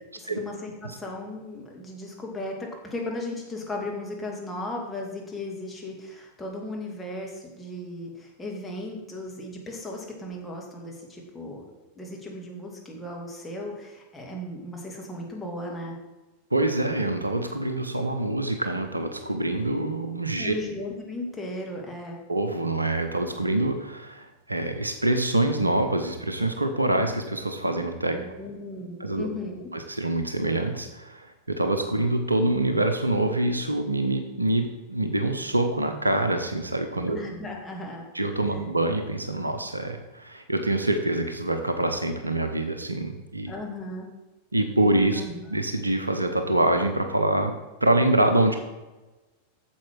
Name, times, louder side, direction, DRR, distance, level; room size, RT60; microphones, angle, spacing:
voice 1, 0.1-11.6 12.0-16.0 20.4-22.2 28.1-29.7 37.1-38.0 43.5-44.1 45.1-45.4, left 1 dB, 10° left, -1 dB, 2.2 m, -36 dB
voice 2, 16.5-20.5 22.3-28.2 29.0-29.3 29.7-37.2 38.1-43.5 44.5-45.2 45.5-48.6, right 2 dB, 80° right, 7 dB, 0.7 m, -25 dB
8.6 x 7.1 x 4.6 m, 1.1 s
figure-of-eight pair, 90°, 0 cm